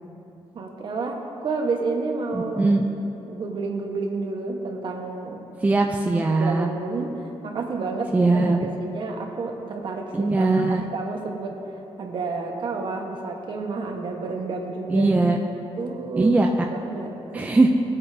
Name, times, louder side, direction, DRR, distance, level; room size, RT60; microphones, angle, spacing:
voice 1, 0.5-2.8 3.3-5.5 6.2-8.3 8.6-15.1 15.8-16.3 16.7-17.5, right 3 dB, 50° right, 1 dB, 1.2 m, -30 dB
voice 2, 2.3-2.8 5.6-6.7 8.1-8.6 10.1-10.8 14.9-15.4 16.2-16.5 17.3-17.7, right 3 dB, 15° right, 2 dB, 0.4 m, -20 dB
18.5 x 8.7 x 2.7 m, 2.9 s
wide cardioid pair, 155°, 10 cm